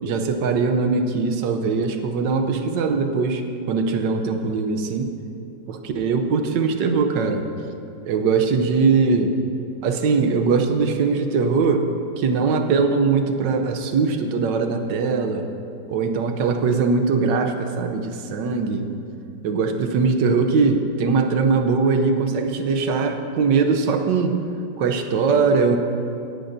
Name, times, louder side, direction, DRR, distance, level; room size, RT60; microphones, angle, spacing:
voice 1, 0.0-5.1 5.7-7.5 8.0-9.4 9.8-11.9 12.2-15.5 15.9-18.9 19.4-24.4 24.8-25.8, right 4 dB, 80° right, 6 dB, 1.4 m, -21 dB
17.5 x 10.5 x 2.7 m, 2.7 s
omnidirectional pair, 1.9 m